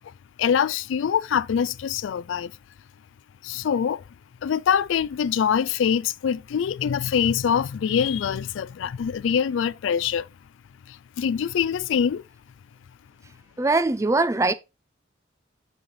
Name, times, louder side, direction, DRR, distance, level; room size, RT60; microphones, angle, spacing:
voice 1, 0.4-2.5 3.4-4.0 4.4-10.3 10.9-12.2, left 7 dB, 75° left, 0.3 m, -24 dB
voice 2, 13.6-14.5, right 3 dB, 15° right, 0.4 m, -21 dB
7.7 x 5.5 x 3.2 m
head